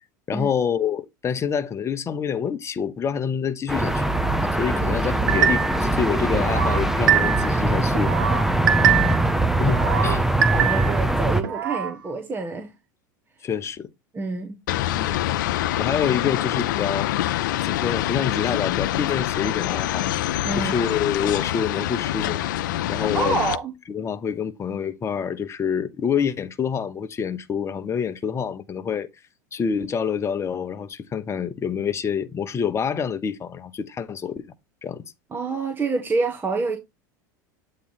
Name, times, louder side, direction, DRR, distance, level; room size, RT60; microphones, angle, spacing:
voice 1, 0.3-4.1 4.6-8.2 9.6-10.2 13.4-13.9 14.8-15.4 15.8-17.1 17.6-20.1 20.6-22.4 22.9-23.4 23.9-29.1 29.5-34.5 34.8-35.0, left 7 dB, 25° left, 0.8 m, -27 dB
sound 1, 3.7-11.4, right 1 dB, 5° right, 0.7 m, -22 dB
voice 2, 4.7-5.0 9.7-10.2 10.5-12.7 14.1-14.6 20.4-20.8 23.1-23.7 35.3-36.8, right 3 dB, 20° right, 1.2 m, -28 dB
sound 2, 5.3-5.9 6.3-7.6 7.9-9.3 9.7-11.0 11.4-11.9, right 9 dB, 85° right, 0.9 m, -23 dB
sound 3, 14.7-23.6, left 14 dB, 75° left, 0.5 m, -25 dB
8.3 x 3.2 x 4.1 m
hypercardioid pair, 100°, 10 cm